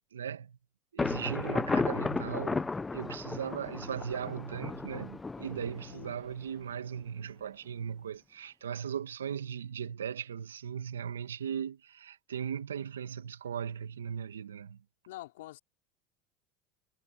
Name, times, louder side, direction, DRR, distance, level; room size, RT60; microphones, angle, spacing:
voice 1, 0.1-0.6 0.9-14.8, right 8 dB, 90° right, 2.1 m, -38 dB
Thunder, 1.0-6.6, left 3 dB, 15° left, 0.8 m, -34 dB
voice 2, 15.1-15.6, left 16 dB, 75° left, 4.8 m, -46 dB
hypercardioid pair, 85°, 0 cm